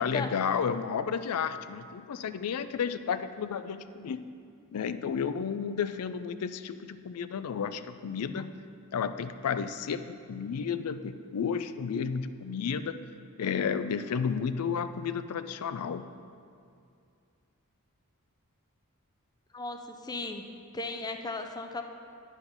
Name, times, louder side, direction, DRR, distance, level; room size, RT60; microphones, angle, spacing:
voice 1, 0.0-4.2 4.7-8.5 8.9-13.0 13.4-16.0, left 6 dB, 80° left, 12 dB, 0.4 m, -32 dB
voice 2, 19.5-20.4 20.7-21.8, left 2 dB, 20° left, 5 dB, 0.5 m, -36 dB
10.5 x 5.0 x 5.2 m, 2.4 s
head